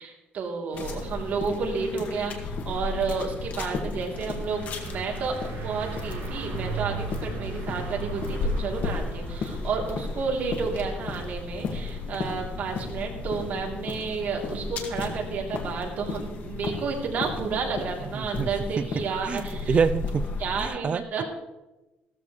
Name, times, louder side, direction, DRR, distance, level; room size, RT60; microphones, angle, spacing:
voice 1, 0.0-5.4 5.6-19.8 20.4-21.2, right 5 dB, 55° right, 3.3 m, -31 dB
sound 1, 0.7-20.7, left 3 dB, 55° left, 2.0 m, -34 dB
sound 2, 4.5-13.9, right 5 dB, 75° right, 5.6 m, -40 dB
sound 3, 6.1-18.5, left 5 dB, 80° left, 2.4 m, -46 dB
voice 2, 18.1-18.5 18.8-18.9 19.2-20.2 20.6-21.0, right 6 dB, 35° right, 0.5 m, -26 dB
16.0 x 14.0 x 3.3 m
cardioid pair, 140°, 3 cm